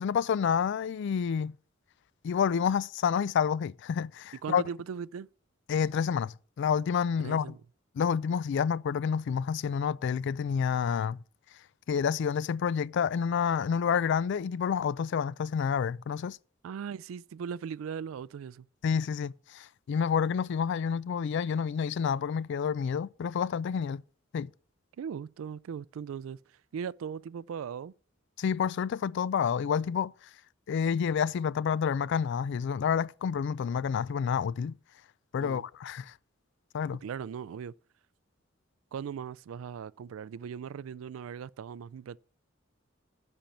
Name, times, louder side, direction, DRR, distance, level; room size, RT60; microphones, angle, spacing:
voice 1, 0.0-1.6 2.2-4.6 5.7-7.5 8.0-11.2 11.9-16.4 18.8-24.0 24.3-24.5 28.4-30.1 30.7-34.8 35.3-36.1 36.7-37.0, left 7 dB, 60° left, 0.3 m, -29 dB
voice 2, 4.4-5.3 7.2-7.6 16.6-18.7 25.0-26.4 26.7-27.9 35.4-35.6 37.0-37.7 38.9-42.2, right 7 dB, 80° right, 0.3 m, -38 dB
10.5 x 4.4 x 7.2 m
head